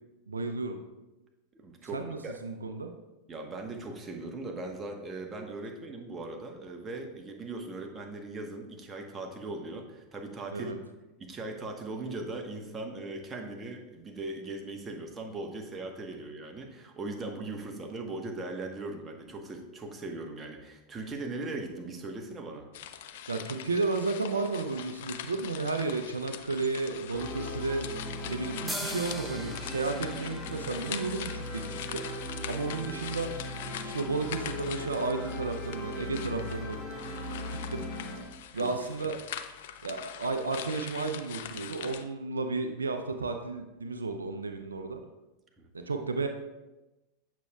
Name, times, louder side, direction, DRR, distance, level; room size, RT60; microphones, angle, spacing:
voice 1, 0.3-0.8 1.9-2.9 10.5-10.8 23.3-27.8 28.3-32.0 32.5-33.3 33.8-36.8 37.5-37.8 38.5-39.2 39.8-45.0 45.7-46.3, right 3 dB, 85° right, 6 dB, 0.4 m, -33 dB
voice 2, 1.5-2.3 3.3-10.7 11.2-22.7 38.5-39.1 45.6-45.7, right 2 dB, 25° right, 2 dB, 1.1 m, -39 dB
sound 1, 22.7-42.0, left 10 dB, 65° left, 0.4 m, -43 dB
sound 2, 27.1-38.2, left 1 dB, 15° left, 1.8 m, -39 dB
sound 3, 28.7-32.2, equal, 5° right, 0.8 m, -42 dB
8.1 x 6.4 x 2.3 m, 1.1 s
hypercardioid pair, 90°, 0 cm